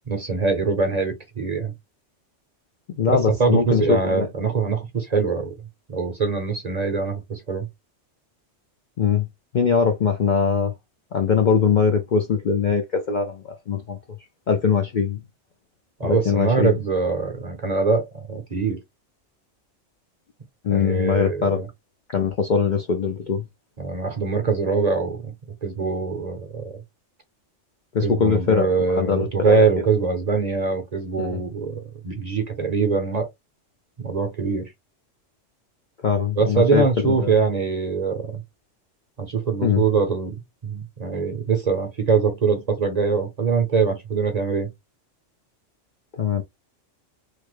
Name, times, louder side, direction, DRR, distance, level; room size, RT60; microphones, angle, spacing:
voice 1, 0.1-1.7 3.1-5.5 5.9-7.7 16.0-18.8 20.7-21.7 23.8-25.3 25.6-26.8 28.0-33.3 34.0-34.7 36.4-38.4 39.2-44.7, right 4 dB, 40° right, 0.7 m, -23 dB
voice 2, 3.0-4.3 9.0-9.3 9.5-10.7 11.1-14.0 14.5-15.2 16.0-16.7 20.6-21.6 22.1-23.4 27.9-29.6 31.2-31.4 36.0-37.3 39.6-39.8 46.2-46.4, left 6 dB, 55° left, 0.5 m, -21 dB
3.2 x 2.1 x 3.2 m
omnidirectional pair, 1.3 m